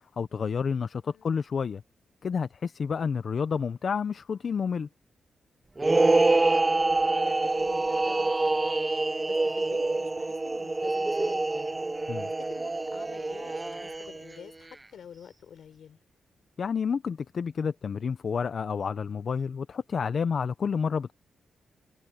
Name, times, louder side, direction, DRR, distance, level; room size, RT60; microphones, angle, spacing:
voice 1, 0.2-1.8 2.2-4.9 12.1-12.3 16.6-21.1, left 6 dB, 50° left, 0.6 m, -29 dB
voice 2, 0.9-1.3 6.8-8.7 9.2-11.8 12.5-16.0, left 8 dB, 75° left, 4.8 m, -48 dB
sound 1, 5.8-14.3, right 2 dB, 20° right, 0.5 m, -26 dB
cardioid pair, 115°, 0 cm